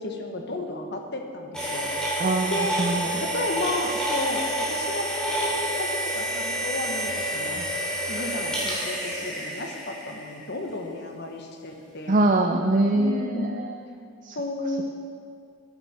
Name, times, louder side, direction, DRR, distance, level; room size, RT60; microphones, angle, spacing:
voice 1, 0.0-1.9 2.4-2.8 3.2-7.6 8.1-12.2 12.9-13.6 14.3-14.8, left 1 dB, 50° left, 3 dB, 1.3 m, -33 dB
sound 1, 1.5-10.5, right 1 dB, 5° left, 2.9 m, -29 dB
voice 2, 2.2-3.1 12.1-13.8 14.3-14.4, right 2 dB, 35° right, 4 dB, 0.5 m, -23 dB
14.5 x 10.5 x 4.4 m, 2.3 s
head